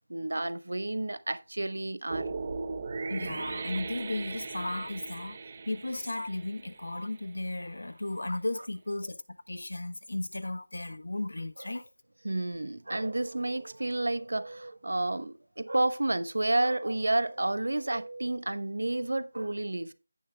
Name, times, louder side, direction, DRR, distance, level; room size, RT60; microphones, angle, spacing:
voice 1, 0.1-2.3 12.2-19.9, right 2 dB, 80° right, 1.0 m, -30 dB
sound 1, 2.1-7.3, right 4 dB, 25° right, 0.9 m, -38 dB
voice 2, 3.1-5.4 5.6-11.9, left 2 dB, 80° left, 1.1 m, -35 dB
16.0 x 6.8 x 2.3 m
figure-of-eight pair, 170°, 0 cm